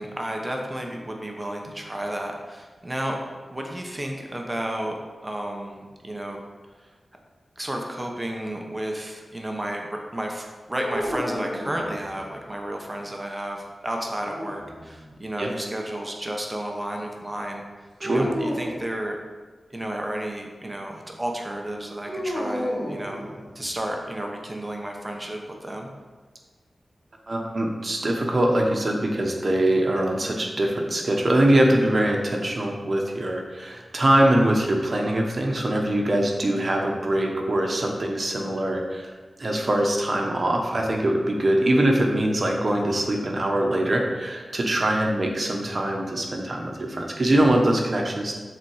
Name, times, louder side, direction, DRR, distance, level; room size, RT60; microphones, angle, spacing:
voice 1, 0.0-3.2 3.5-6.4 7.6-17.6 18.0-19.2 19.7-23.2 23.5-25.9, right 1 dB, 20° right, 1 dB, 1.0 m, -32 dB
sound 1, 10.8-12.4 14.0-15.1 18.0-18.8 22.0-23.7, equal, 65° left, 2.3 m, -32 dB
voice 2, 27.3-39.1 39.4-48.3, right 1 dB, 45° right, 1 dB, 1.2 m, -23 dB
7.3 x 4.2 x 4.9 m, 1.4 s
wide cardioid pair, 70°, 0 cm